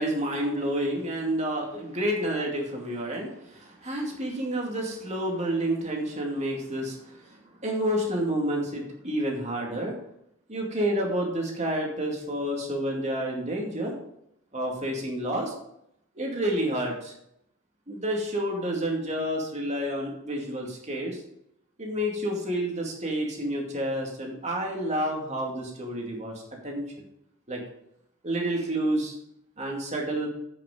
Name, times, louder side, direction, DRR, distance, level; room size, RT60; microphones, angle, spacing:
voice 1, 0.0-7.4 7.6-9.9 10.5-13.9 14.5-15.5 16.2-17.1 17.9-21.2 21.8-26.3 26.6-27.0 27.5-27.6 28.2-29.2 29.6-30.3, right 1 dB, 35° right, 0 dB, 2.4 m, -29 dB
8.5 x 7.5 x 5.0 m, 0.75 s
head